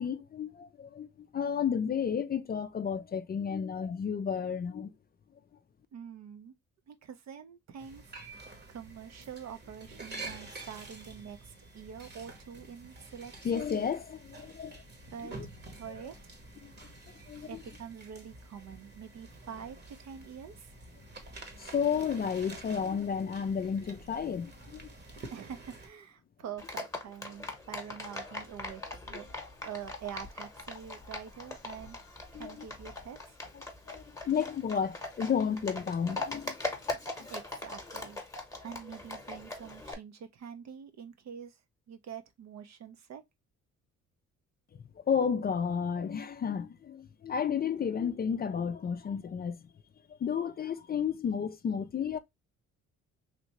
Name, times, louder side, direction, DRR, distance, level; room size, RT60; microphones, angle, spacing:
voice 1, 0.0-4.9 13.4-14.8 15.4-15.5 17.3-17.6 21.6-24.9 32.3-32.7 33.9-36.6 37.2-37.3 44.7-49.7 50.2-52.2, left 7 dB, 30° left, 0.4 m, -32 dB
voice 2, 5.9-6.5 6.9-8.1 8.7-13.3 13.7-13.9 15.1-15.3 15.7-16.3 17.5-20.7 25.3-32.0 32.3-33.4 37.3-38.2 38.6-41.6 41.9-43.2, right 8 dB, 60° right, 0.7 m, -45 dB
sound 1, 7.8-25.9, right 2 dB, 35° right, 1.0 m, -48 dB
Livestock farm animals working animals, 26.6-39.9, left 2 dB, 10° left, 1.0 m, -41 dB
3.3 x 2.6 x 2.9 m
cardioid pair, 90°, 30 cm